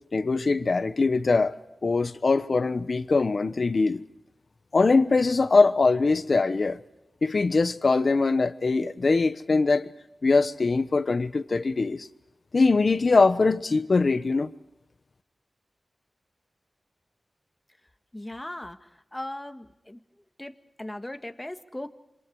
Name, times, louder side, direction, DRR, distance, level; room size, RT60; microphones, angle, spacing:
voice 1, 0.1-1.5 1.8-4.0 4.7-6.8 7.2-9.9 10.2-12.1 12.5-14.5, left 3 dB, 60° left, 1.1 m, -22 dB
voice 2, 18.1-18.8 19.1-20.0 20.4-20.5 20.8-21.9, left 1 dB, 15° left, 1.6 m, -37 dB
27.5 x 26.0 x 4.8 m
wide cardioid pair, 70°, 0 cm